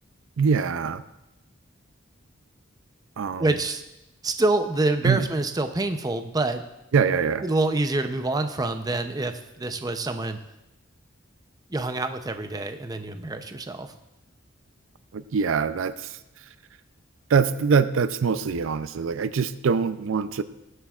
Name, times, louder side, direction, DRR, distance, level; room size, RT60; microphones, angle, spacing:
voice 1, 0.4-1.0 3.2-3.5 5.0-5.3 6.9-7.4 15.1-16.5 17.3-20.4, right 5 dB, 70° right, 13 dB, 0.4 m, -24 dB
voice 2, 3.3-3.8 4.2-6.6 7.4-10.4 11.7-13.9, right 2 dB, 20° right, 8 dB, 0.5 m, -26 dB
19.5 x 7.8 x 2.4 m, 0.91 s
head